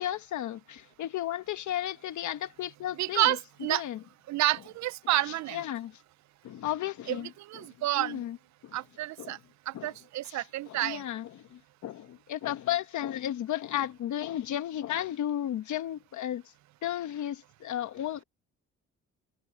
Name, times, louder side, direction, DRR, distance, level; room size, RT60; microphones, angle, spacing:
voice 1, 0.0-3.4 3.7-4.0 5.2-6.0 6.4-8.4 8.6-8.8 9.2-9.4 9.7-9.9 10.2-16.4 16.8-18.2, left 12 dB, 75° left, 1.3 m, -34 dB
voice 2, 3.0-3.8 4.3-5.6 7.1-7.2 7.5-8.2 8.7-9.4 9.7-11.0, right 15 dB, 65° right, 0.6 m, -29 dB
cardioid pair, 90°, 30 cm